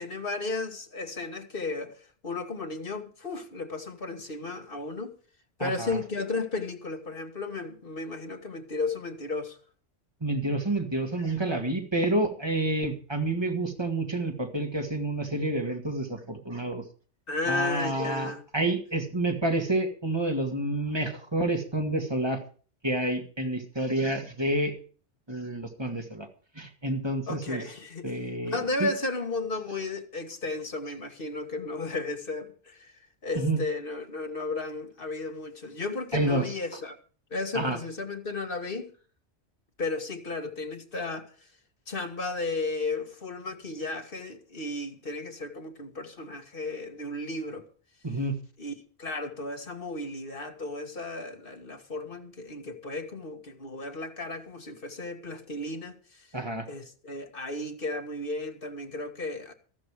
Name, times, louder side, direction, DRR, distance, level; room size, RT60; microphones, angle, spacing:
voice 1, 0.0-5.2 5.6-9.6 17.3-18.4 27.3-32.9 33.2-37.0 37.3-38.9 39.8-41.3 41.9-47.6 48.6-48.7 49.0-56.3 56.7-59.5, left 3 dB, 50° left, 1.9 m, -34 dB
voice 2, 5.6-6.0 10.2-16.8 17.5-22.4 22.8-24.7 25.3-26.3 26.6-27.6 28.0-28.9 33.4-33.6 36.1-36.5 37.5-37.8 48.0-48.4 56.3-56.7, right 2 dB, 20° right, 2.2 m, -29 dB
13.5 x 12.5 x 4.9 m
omnidirectional pair, 1.2 m